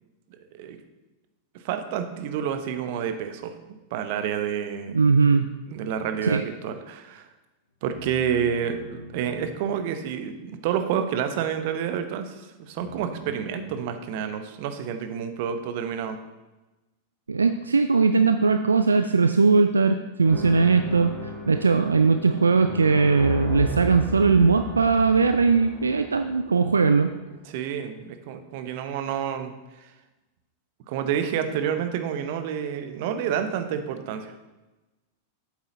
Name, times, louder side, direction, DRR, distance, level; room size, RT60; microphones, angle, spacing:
voice 1, 1.6-3.5 3.9-5.0 5.7-7.3 7.8-16.2 27.5-29.5 29.8-29.9 30.9-34.3, right 8 dB, 50° right, 8 dB, 0.8 m, -29 dB
voice 2, 4.9-5.5 6.2-6.4 17.3-21.2 21.5-27.1, right 4 dB, 80° right, 8 dB, 0.3 m, -20 dB
sound 1, 7.9-10.2 12.7-13.7, left 2 dB, 85° left, 1.2 m, -43 dB
sound 2, 20.2-27.3, equal, 10° right, 2.2 m, -36 dB
8.1 x 7.3 x 3.9 m, 1.1 s
figure-of-eight pair, 90°, 0 cm